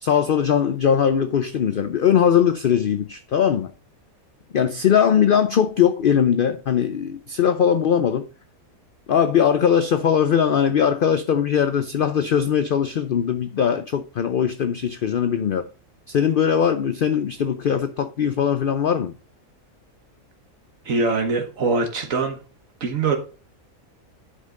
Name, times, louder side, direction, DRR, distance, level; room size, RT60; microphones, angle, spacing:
voice 1, 0.0-3.7 4.5-8.3 9.1-15.7 16.1-19.1, left 8 dB, 55° left, 0.6 m, -20 dB
voice 2, 20.8-22.4 22.8-23.2, right 4 dB, 70° right, 1.5 m, -22 dB
10.0 x 5.5 x 3.7 m
omnidirectional pair, 1.5 m